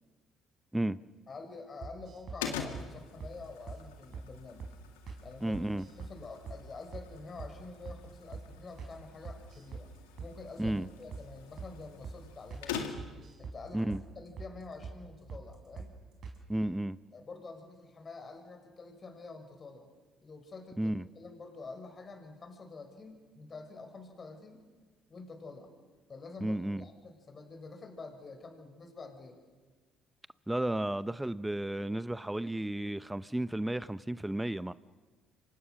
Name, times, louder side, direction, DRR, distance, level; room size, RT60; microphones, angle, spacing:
voice 1, 1.3-4.7 5.2-5.6 5.9-9.9 10.2-12.9 13.4-15.9 17.1-19.9 20.2-24.6 25.1-25.7 26.1-29.4, left 3 dB, 40° left, 5.1 m, -47 dB
sound 1, 1.8-2.4 2.7-2.9 3.2-3.4 3.7-3.8 4.1-4.3 4.6-4.8 5.1-5.2 5.5-6.2 6.5-6.6 6.9-7.1 7.4-7.6 7.9-8.0 8.3-8.5 8.8-9.0 9.3-9.9 10.2-10.3 10.6-10.8 11.1-11.3 11.6-11.7 12.0-12.2 12.5-12.7 13.0-13.6 13.9-14.1 14.4-14.5 14.8-15.0 15.3-15.5 15.8-15.9 16.2-16.4, right 5 dB, 55° right, 4.5 m, -43 dB
sound 2, 2.4-13.3, left 7 dB, 90° left, 2.0 m, -45 dB
voice 2, 5.4-5.9 10.6-10.9 13.7-14.0 16.5-17.0 20.8-21.1 26.4-26.8 30.5-34.7, right 1 dB, 10° right, 0.7 m, -33 dB
27.5 x 24.5 x 6.4 m
hypercardioid pair, 60°, 0 cm